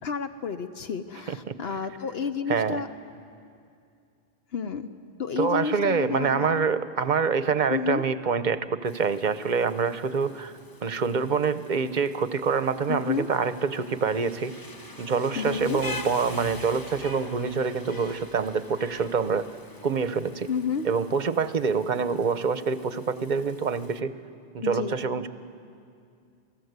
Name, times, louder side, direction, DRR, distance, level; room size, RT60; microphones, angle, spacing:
voice 1, 0.0-2.9 4.5-4.9 5.2-6.7 7.7-8.0 12.9-13.3 15.3-15.8 20.5-20.9 24.6-25.0, left 6 dB, 65° left, 8 dB, 1.0 m, -30 dB
voice 2, 2.5-2.8 5.4-10.5 10.8-14.5 15.0-19.4 19.8-20.5 20.8-24.1 24.5-25.3, right 5 dB, 45° right, 12 dB, 0.8 m, -26 dB
Rain, 8.8-24.0, left 2 dB, 20° left, 0.8 m, -44 dB
28.5 x 18.5 x 8.1 m, 2.4 s
omnidirectional pair, 1.1 m